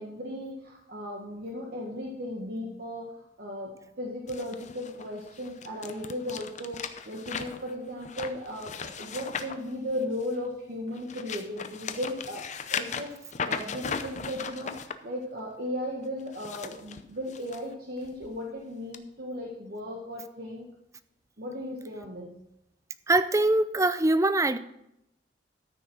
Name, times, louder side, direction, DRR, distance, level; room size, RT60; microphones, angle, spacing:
voice 1, 0.0-12.4 12.7-20.7 21.4-22.3, left 1 dB, 60° right, -2 dB, 1.7 m, -36 dB
sound 1, 4.3-10.4 10.9-14.9 16.2-17.6 18.0-18.3 18.9-19.0, left 6 dB, 40° left, 0.7 m, -37 dB
voice 2, 23.1-24.6, right 2 dB, 20° right, 13 dB, 0.5 m, -23 dB
13.5 x 6.2 x 6.1 m, 0.80 s
head